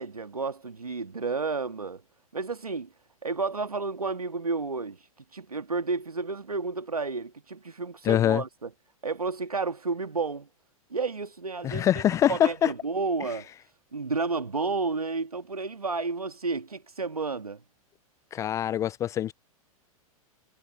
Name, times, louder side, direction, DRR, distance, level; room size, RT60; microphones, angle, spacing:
voice 1, 0.0-2.0 2.3-2.9 3.2-5.0 5.3-8.7 9.0-10.5 10.9-12.0 12.3-13.5 13.9-17.6, right 4 dB, 80° right, 1.7 m, -31 dB
voice 2, 8.0-8.4 11.6-12.7 18.3-19.3, left 11 dB, 15° left, 0.3 m, -24 dB
figure-of-eight pair, 100°, 19 cm